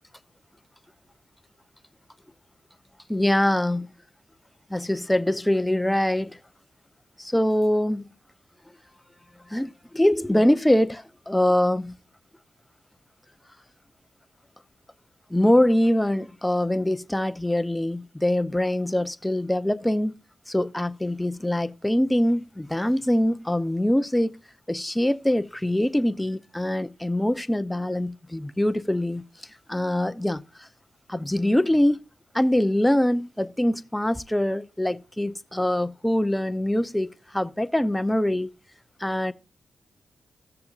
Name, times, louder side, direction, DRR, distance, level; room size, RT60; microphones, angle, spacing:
voice 1, 3.1-3.9 4.7-6.4 7.2-8.0 9.5-11.9 15.3-20.1 20.5-24.4 24.7-29.2 29.7-30.7 31.1-32.0 32.3-38.5 39.0-39.3, left 1 dB, 10° left, 0.7 m, -23 dB
16.5 x 6.8 x 2.5 m
cardioid pair, 65°, 0 cm